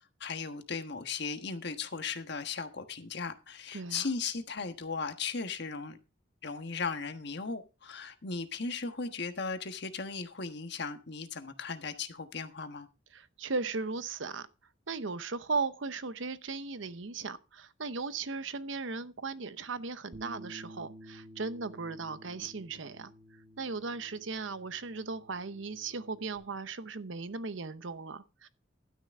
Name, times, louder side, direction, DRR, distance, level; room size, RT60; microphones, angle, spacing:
voice 1, 0.2-6.0 6.4-12.9, left 4 dB, 60° left, 1.3 m, -37 dB
voice 2, 3.7-4.1 13.1-14.5 14.9-23.1 23.6-28.5, right 4 dB, 75° right, 0.8 m, -37 dB
Bass guitar, 20.1-26.4, right 1 dB, 35° right, 1.6 m, -52 dB
12.0 x 9.8 x 3.6 m
head